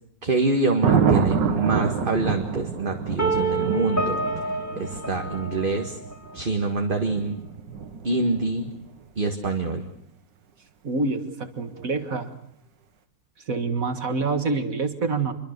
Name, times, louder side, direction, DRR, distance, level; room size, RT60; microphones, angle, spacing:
voice 1, 0.2-4.2 4.8-6.0 6.3-7.4 8.0-8.7 9.2-9.9, right 3 dB, 30° right, 4 dB, 1.8 m, -25 dB
Thunder, 0.8-8.9 11.6-11.9, right 6 dB, 70° right, 2.2 m, -27 dB
sound 1, 3.2-6.1, right 2 dB, 10° left, 3.0 m, -28 dB
voice 2, 10.8-12.3 13.5-15.3, right 3 dB, 45° right, 8 dB, 2.1 m, -26 dB
26.0 x 23.0 x 6.7 m, 0.74 s
omnidirectional pair, 2.1 m